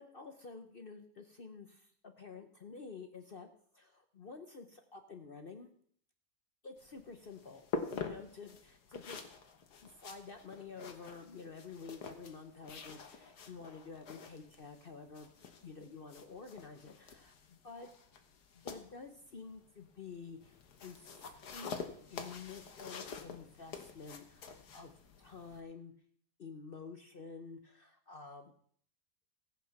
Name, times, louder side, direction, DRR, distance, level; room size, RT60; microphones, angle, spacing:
voice 1, 0.0-5.7 6.6-7.7 7.9-9.2 9.8-15.3 15.6-17.9 18.5-21.7 22.1-24.9 25.2-25.9 26.4-28.5, left 4 dB, 45° left, 6 dB, 0.7 m, -50 dB
sound 1, 6.8-25.6, left 5 dB, 65° left, 1.7 m, -47 dB
15.0 x 8.7 x 5.8 m, 0.62 s
omnidirectional pair, 1.9 m